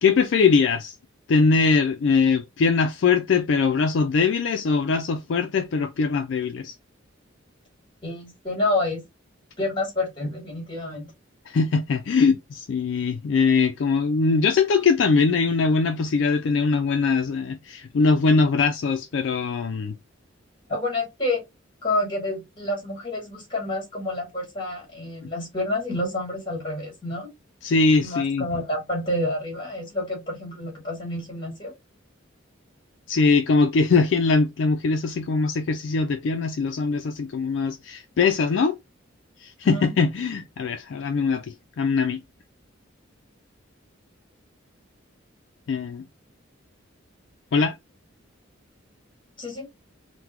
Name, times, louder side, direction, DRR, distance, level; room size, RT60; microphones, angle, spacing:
voice 1, 0.0-0.9 1.3-6.7 11.5-19.9 27.6-28.4 33.1-38.8 39.4-41.4 41.8-42.2 45.7-46.0 47.5-47.7, left 4 dB, 65° left, 0.3 m, -21 dB
voice 2, 8.0-9.0 9.6-11.1 20.7-21.4 21.8-27.3 28.0-31.7 39.6-39.9 49.4-49.7, left 2 dB, 25° left, 1.8 m, -28 dB
3.8 x 2.1 x 2.9 m
head